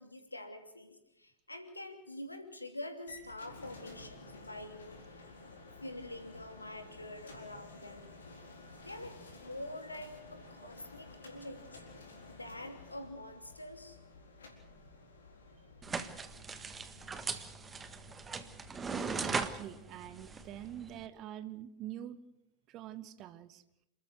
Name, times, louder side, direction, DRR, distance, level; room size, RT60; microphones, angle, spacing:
voice 1, 0.0-5.2 5.8-8.1 8.7-11.8 12.3-14.0, left 1 dB, 85° left, 6 dB, 2.8 m, -46 dB
sound 1, 3.1-20.9, left 3 dB, 70° left, 4.1 m, -54 dB
sound 2, 15.8-21.1, right 5 dB, 15° right, 1.5 m, -39 dB
voice 2, 19.0-22.2 22.7-23.6, right 12 dB, 35° right, 14 dB, 1.4 m, -45 dB
28.5 x 13.5 x 7.9 m, 0.84 s
figure-of-eight pair, 90°, 0 cm